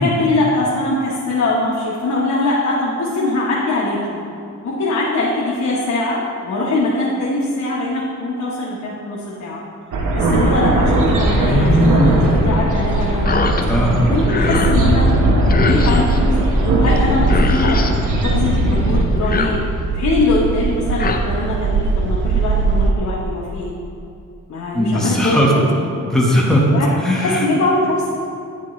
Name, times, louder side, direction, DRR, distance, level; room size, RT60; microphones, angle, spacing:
voice 1, 0.0-4.2 4.6-9.6 10.1-13.3 14.1-15.1 15.4-19.6 19.9-23.7 24.5-25.8 26.7-26.9 27.1-28.1, left 2 dB, 60° left, -5 dB, 1.2 m, -22 dB
sound 1, 9.9-19.0, right 1 dB, 85° right, 1.2 m, -17 dB
voice 2, 11.1-12.5 13.7-14.1 24.7-25.5 26.0-26.7 27.0-27.5, equal, ahead, -3 dB, 1.2 m, -17 dB
sound 2, 13.2-13.7 14.0-14.8 15.5-16.2 17.0-17.1 17.2-18.0 19.1-20.0 20.7-21.2, left 3 dB, 30° left, 0.6 m, -22 dB
sound 3, 16.8-22.9, right 4 dB, 40° right, 0.6 m, -23 dB
9.0 x 7.4 x 3.2 m, 2.5 s
cardioid pair, 105°, 30 cm